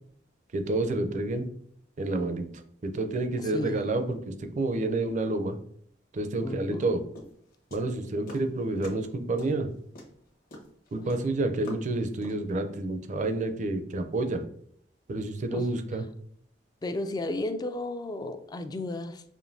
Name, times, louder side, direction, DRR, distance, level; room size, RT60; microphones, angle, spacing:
voice 1, 0.5-1.5 2.0-2.5 2.8-5.6 6.1-7.0 7.7-9.7 10.9-14.4 15.1-16.0, right 2 dB, 45° right, 7 dB, 0.5 m, -29 dB
voice 2, 3.4-3.8 6.4-6.9 15.5-15.6 16.8-19.2, left 2 dB, 20° left, 9 dB, 0.3 m, -33 dB
sound 1, 7.1-8.5 8.8-9.1 9.4-12.5, left 1 dB, 55° left, 1.0 m, -44 dB
5.1 x 2.6 x 2.6 m, 0.63 s
head